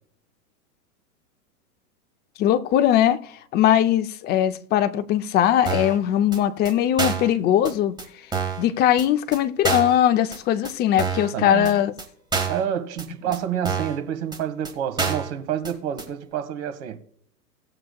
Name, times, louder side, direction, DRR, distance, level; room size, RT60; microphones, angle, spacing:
voice 1, 2.4-3.2 3.5-7.9 8.6-11.9, left 11 dB, 20° left, 0.6 m, -20 dB
sound 1, 5.7-6.0 6.3-6.4 6.7-6.8 7.0-7.3 7.7-7.8 8.0-8.1 8.3-8.6 9.0-9.1 9.3-9.4 9.6-10.0 10.3-10.4 10.6-10.7 11.0-11.3 11.7-11.8 12.0-12.1 12.3-12.6 13.0-13.1 13.3-13.4 13.7-14.0 14.3-14.4 14.6-14.7 15.0-15.3 15.6-15.7 16.0-16.1, right 5 dB, 10° right, 1.7 m, -27 dB
voice 2, 11.3-11.7 12.5-17.0, right 9 dB, 50° right, 1.8 m, -28 dB
18.0 x 7.6 x 2.3 m
hypercardioid pair, 115°, 46 cm